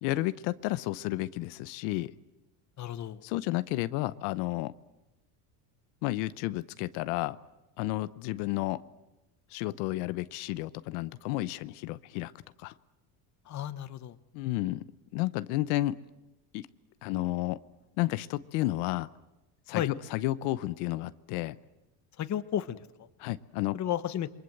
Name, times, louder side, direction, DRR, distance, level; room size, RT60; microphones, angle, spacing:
voice 1, 0.0-2.1 3.2-4.7 6.0-7.4 7.8-8.8 9.5-12.3 12.6-12.7 14.3-14.8 15.1-16.0 16.5-16.7 17.0-17.6 18.0-19.1 19.7-21.6 23.2-23.8, left 17 dB, 85° left, 14 dB, 0.9 m, -31 dB
voice 2, 2.8-3.2 13.5-14.2 19.7-19.9 22.2-23.1 23.7-24.3, left 11 dB, 35° left, 13 dB, 1.2 m, -33 dB
28.0 x 23.0 x 7.9 m, 0.99 s
cardioid pair, 130°, 46 cm